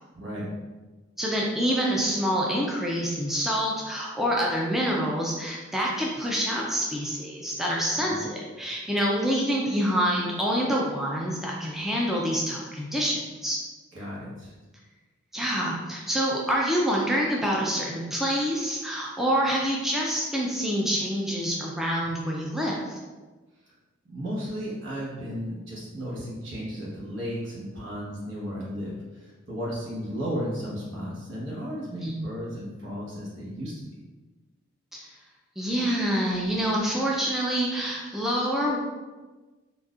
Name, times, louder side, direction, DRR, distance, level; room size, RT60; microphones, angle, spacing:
voice 1, 0.1-0.5 7.9-8.2 13.9-14.5 24.0-33.9, equal, 75° right, -6 dB, 1.2 m, -34 dB
voice 2, 1.2-13.6 15.3-23.0 32.0-32.2 34.9-35.1 35.6-38.8, equal, ahead, -3 dB, 0.3 m, -26 dB
4.0 x 2.6 x 2.4 m, 1.2 s
head